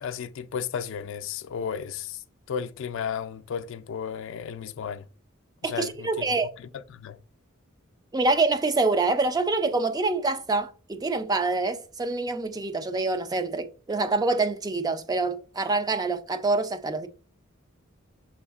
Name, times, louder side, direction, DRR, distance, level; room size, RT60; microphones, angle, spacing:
voice 1, 0.0-2.2 2.5-5.1 5.6-7.2, left 7 dB, 65° left, 0.3 m, -34 dB
voice 2, 5.6-6.5 8.1-17.1, right 3 dB, 20° right, 0.4 m, -26 dB
6.2 x 3.5 x 2.3 m
head